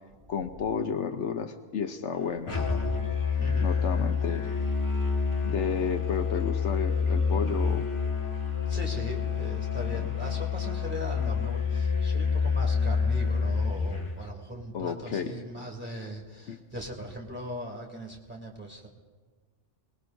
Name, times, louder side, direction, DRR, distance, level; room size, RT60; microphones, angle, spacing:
voice 1, 0.3-2.6 3.6-4.5 5.4-7.9 9.8-10.1 14.7-15.3 16.5-16.6, left 6 dB, 75° left, 7 dB, 1.1 m, -32 dB
Musical instrument, 2.5-14.2, left 5 dB, 25° left, 2.2 m, -28 dB
voice 2, 8.7-18.9, equal, 10° right, -2 dB, 2.6 m, -39 dB
26.0 x 19.5 x 2.6 m, 1.4 s
omnidirectional pair, 1.2 m